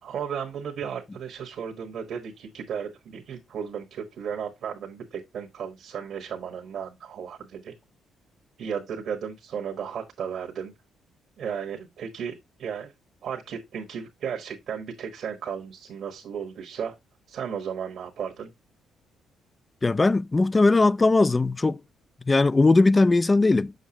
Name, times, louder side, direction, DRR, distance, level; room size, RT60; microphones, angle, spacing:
voice 1, 0.0-7.7 8.6-10.7 11.4-12.3 12.6-12.9 13.2-16.9 17.3-18.5, right 7 dB, 65° right, 1.2 m, -34 dB
voice 2, 19.8-21.8 22.3-23.7, left 3 dB, 25° left, 0.3 m, -19 dB
6.5 x 6.2 x 2.8 m
cardioid pair, 90°, 0 cm